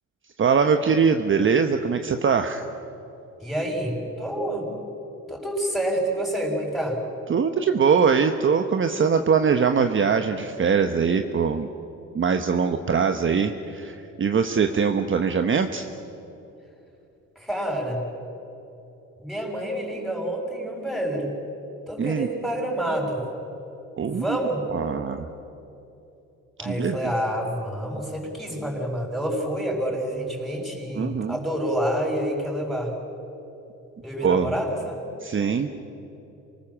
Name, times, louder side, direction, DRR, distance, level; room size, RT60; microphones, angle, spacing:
voice 1, 0.4-2.6 7.3-11.7 12.1-15.9 22.0-22.3 24.0-24.4 24.7-25.3 26.6-27.1 30.9-31.4 34.2-34.5 35.2-35.7, right 6 dB, 40° right, 6 dB, 1.1 m, -22 dB
voice 2, 3.4-4.7 5.3-7.0 17.4-18.0 19.2-21.3 21.9-23.2 24.0-24.6 26.6-32.9 34.0-35.0, right 1 dB, ahead, 0 dB, 6.5 m, -28 dB
27.5 x 19.5 x 7.4 m, 2.9 s
cardioid pair, 90°, 30 cm